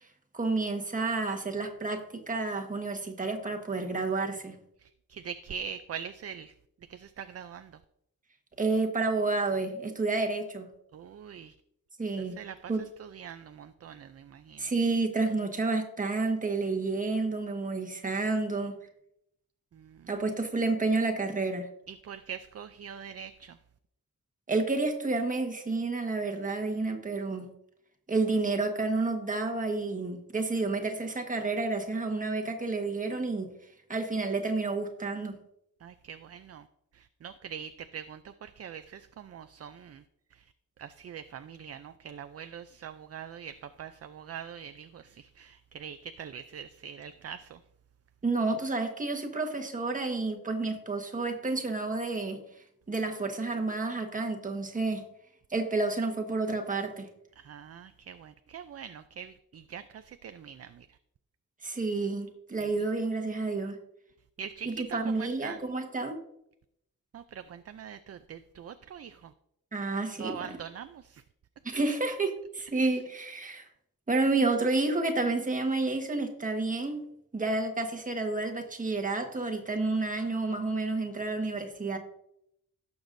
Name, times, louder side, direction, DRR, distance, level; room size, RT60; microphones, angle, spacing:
voice 1, 0.3-4.6 8.6-10.7 12.0-12.3 12.7-12.8 14.6-18.8 20.1-21.7 24.5-27.5 28.1-33.5 33.9-35.4 48.2-52.4 52.9-55.0 55.5-57.1 61.6-63.8 64.6-66.2 69.7-70.4 71.6-73.7 74.1-77.0 77.3-82.0, right 3 dB, 25° right, 3 dB, 1.4 m, -30 dB
voice 2, 4.8-6.5 6.9-7.8 10.9-11.5 12.2-14.7 19.7-20.2 21.9-23.6 35.8-36.7 36.9-40.0 40.3-40.4 40.8-47.6 57.4-61.0 62.6-62.9 64.4-65.6 67.1-69.3 70.2-71.2, right 7 dB, 45° right, 10 dB, 0.4 m, -43 dB
17.5 x 7.1 x 2.6 m, 0.76 s
wide cardioid pair, 140°, 34 cm